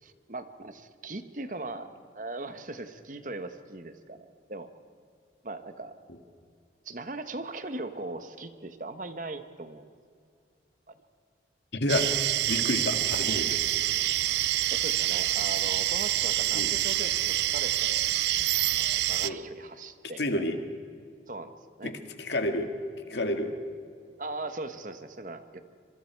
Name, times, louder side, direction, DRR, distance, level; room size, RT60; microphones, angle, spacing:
voice 1, 0.0-1.9 2.1-4.7 5.4-6.0 6.8-9.9 10.9-11.0 14.7-18.1 18.8-20.4 21.3-21.9 24.2-25.6, right 2 dB, 45° right, 9 dB, 1.1 m, -39 dB
voice 2, 11.7-12.1 12.5-13.6 16.5-16.7 19.2-19.4 20.2-20.6 21.8-22.7 23.1-23.5, left 1 dB, 75° left, 6 dB, 1.9 m, -29 dB
sound 1, 11.9-19.3, right 14 dB, 70° right, 0.4 m, -27 dB
26.0 x 23.5 x 4.6 m, 2.3 s
head